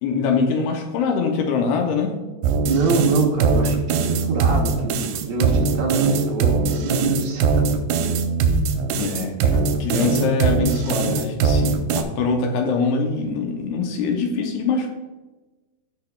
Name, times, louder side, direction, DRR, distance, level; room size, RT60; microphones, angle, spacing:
voice 1, 0.0-2.2 8.9-14.9, left 4 dB, 80° left, 2 dB, 2.6 m, -23 dB
sound 1, 2.4-12.0, right 4 dB, 90° right, 2.8 m, -21 dB
voice 2, 2.7-7.6, right 4 dB, 70° right, 0 dB, 2.7 m, -24 dB
15.5 x 5.2 x 2.3 m, 1.2 s
omnidirectional pair, 4.8 m